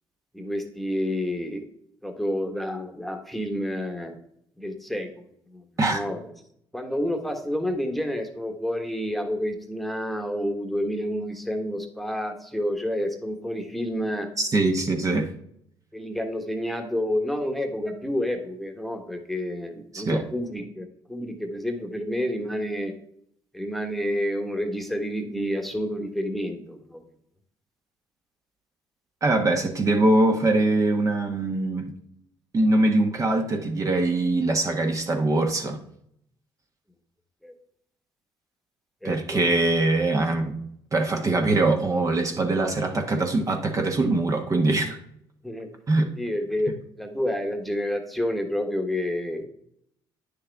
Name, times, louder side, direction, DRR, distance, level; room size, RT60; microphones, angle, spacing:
voice 1, 0.3-1.6 2.0-4.1 4.6-5.2 5.5-5.6 5.9-6.3 6.7-14.3 15.9-22.9 23.5-27.0 37.4-37.5 39.0-39.4 45.4-45.7 46.2-49.5, equal, ahead, 1.3 m, -29 dB
voice 2, 14.4-15.3 19.9-20.2 29.2-31.9 32.5-35.8 39.0-40.5 40.9-45.0 45.9-46.1, right 2 dB, 35° right, 1.1 m, -22 dB
9.5 x 6.5 x 3.5 m
cardioid pair, 95°, 9 cm